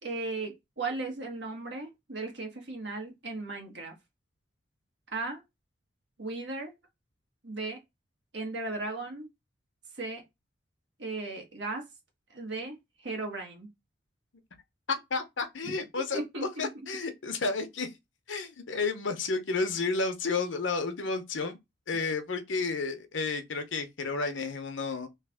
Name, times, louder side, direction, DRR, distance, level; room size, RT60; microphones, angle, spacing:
voice 1, 0.0-3.9 5.1-5.4 6.2-6.7 7.4-7.8 8.3-9.3 10.0-10.2 11.0-11.8 12.3-12.8 13.0-13.7 15.6-15.7 16.1-16.7, right 3 dB, 65° right, 1.5 m, -36 dB
voice 2, 14.9-16.2 16.6-17.9 18.3-21.6 21.9-25.1, left 4 dB, 85° left, 0.9 m, -31 dB
3.3 x 3.3 x 3.5 m
head